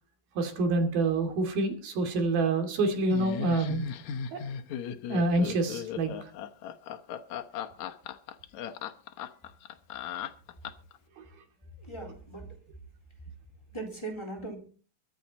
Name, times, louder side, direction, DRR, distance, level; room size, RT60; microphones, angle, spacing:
voice 1, 0.4-3.8 4.3-4.4 5.1-6.3, right 2 dB, 75° right, 5 dB, 4.5 m, -27 dB
Laughter, 3.1-11.0, left 8 dB, 65° left, 1.9 m, -37 dB
voice 2, 11.8-12.5 13.7-14.6, right 2 dB, 5° left, 2 dB, 3.8 m, -39 dB
23.5 x 9.2 x 4.2 m, 0.40 s
omnidirectional pair, 4.3 m